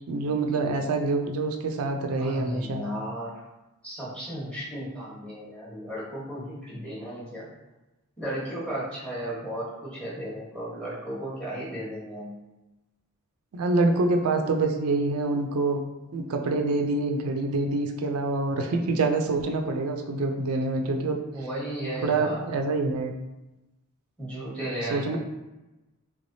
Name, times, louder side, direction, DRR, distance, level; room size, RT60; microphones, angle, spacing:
voice 1, 0.1-2.8 13.5-15.8 16.1-21.2 22.0-23.1 24.8-25.2, right 3 dB, 85° right, 4 dB, 0.4 m, -26 dB
voice 2, 2.2-3.3 3.8-7.5 8.2-12.4 21.3-22.5 24.2-25.2, right 1 dB, 5° left, -8 dB, 1.1 m, -35 dB
3.3 x 3.2 x 2.6 m, 1.0 s
head